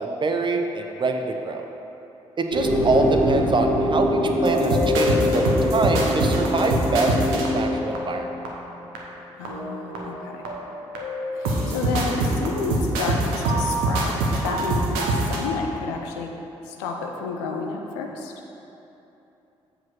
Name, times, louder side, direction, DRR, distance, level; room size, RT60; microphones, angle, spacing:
voice 1, 0.0-1.7 2.4-8.3, right 3 dB, 30° right, 4 dB, 0.8 m, -25 dB
sound 1, 2.5-7.5, equal, 85° left, 1.5 m, -24 dB
sound 2, 4.4-8.5 9.0-9.1 9.5-10.2 10.5-15.5, right 1 dB, 70° right, 1.0 m, -25 dB
voice 2, 9.3-10.5 11.3-16.3 16.6-18.3, left 4 dB, 70° left, 2 dB, 0.7 m, -31 dB
7.5 x 5.0 x 5.9 m, 3.0 s
figure-of-eight pair, 40°, 15 cm